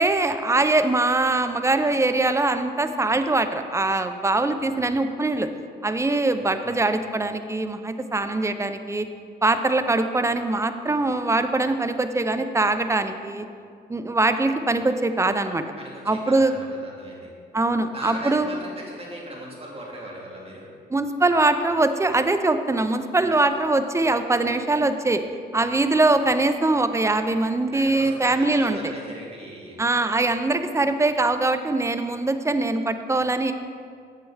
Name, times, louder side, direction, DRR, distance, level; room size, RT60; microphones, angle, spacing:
voice 1, 0.0-5.5 5.8-9.1 9.4-13.5 13.9-15.6 16.1-16.5 17.5-18.5 20.9-25.2 25.5-28.8 29.8-33.5, right 2 dB, 15° right, 9 dB, 0.4 m, -22 dB
voice 2, 4.5-5.0 6.4-6.8 15.8-17.3 17.9-20.7 27.7-29.8, right 1 dB, 30° right, -3 dB, 1.9 m, -39 dB
7.5 x 7.1 x 3.3 m, 2.2 s
cardioid pair, 70°, 19 cm